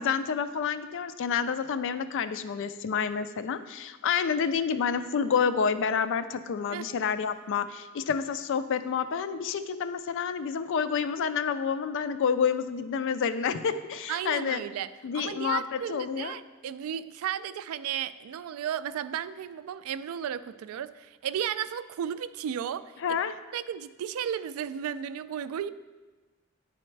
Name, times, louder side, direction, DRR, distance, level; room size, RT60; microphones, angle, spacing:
voice 1, 0.0-14.6 15.0-16.4 23.0-23.4, left 6 dB, 60° left, 12 dB, 0.4 m, -29 dB
voice 2, 14.1-14.9 15.1-22.9 23.5-25.7, right 9 dB, 80° right, 16 dB, 0.3 m, -34 dB
9.9 x 4.2 x 3.2 m, 1.2 s
head